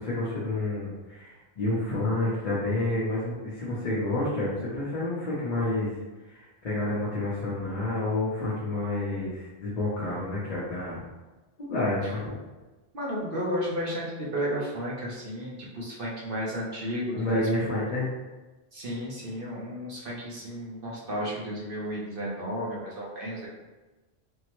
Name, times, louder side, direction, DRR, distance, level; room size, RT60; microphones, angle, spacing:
voice 1, 0.0-5.9 6.3-11.0 11.6-12.4 16.8-18.1, left 2 dB, 45° left, -8 dB, 0.7 m, -29 dB
voice 2, 12.9-17.6 18.7-23.5, equal, 60° right, -5 dB, 1.0 m, -33 dB
3.5 x 2.1 x 2.9 m, 1.2 s
omnidirectional pair, 1.1 m